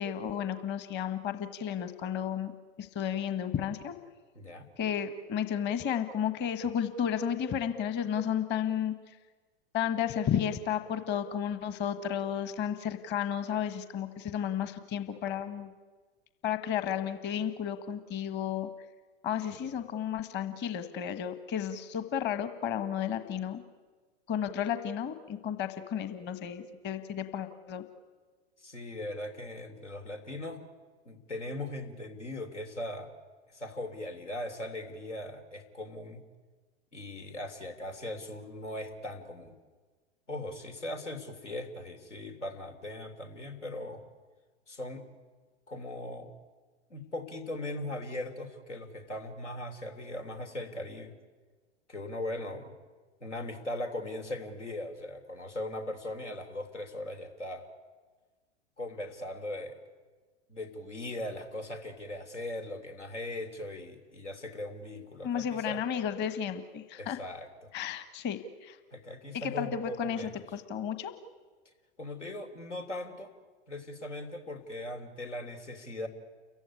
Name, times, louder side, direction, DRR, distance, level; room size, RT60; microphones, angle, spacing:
voice 1, 0.0-2.5 2.8-3.9 4.8-9.2 9.7-15.7 16.4-18.7 19.2-23.6 24.3-27.8 65.2-67.2 67.7-68.8 69.3-71.1, left 8 dB, 30° left, 10 dB, 1.5 m, -33 dB
voice 2, 4.3-4.7 19.5-19.6 28.6-30.6 31.0-33.1 33.5-36.2 36.9-39.5 40.3-44.0 44.7-45.0 45.7-46.3 46.9-51.1 51.9-52.7 53.2-57.7 58.8-59.8 60.5-65.8 67.0-67.7 68.9-70.3 72.0-73.3 73.7-76.1, left 1 dB, 85° left, 5 dB, 3.4 m, -39 dB
29.0 x 15.5 x 9.8 m, 1.4 s
figure-of-eight pair, 100°, 35 cm